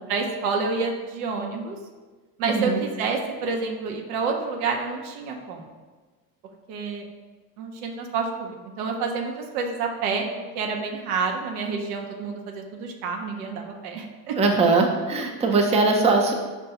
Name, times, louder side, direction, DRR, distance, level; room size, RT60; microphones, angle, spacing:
voice 1, 0.1-1.8 2.4-5.7 6.7-7.1 7.6-14.4, right 4 dB, 85° right, 2 dB, 0.7 m, -28 dB
voice 2, 2.4-2.8 14.4-16.3, right 3 dB, 15° right, 2 dB, 0.4 m, -20 dB
5.3 x 2.2 x 2.8 m, 1.3 s
hypercardioid pair, 80°, 44 cm